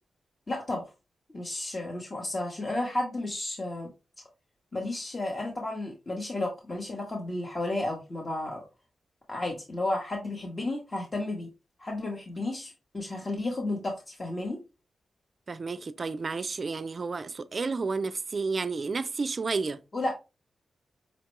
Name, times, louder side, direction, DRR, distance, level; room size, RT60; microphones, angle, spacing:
voice 1, 0.5-0.9 1.3-3.9 4.7-8.6 9.3-11.5 11.8-14.6 19.9-20.2, left 2 dB, 30° left, 0.9 m, -32 dB
voice 2, 15.5-19.8, right 4 dB, 40° right, 0.3 m, -31 dB
5.2 x 2.2 x 2.9 m
wide cardioid pair, 125°, 0 cm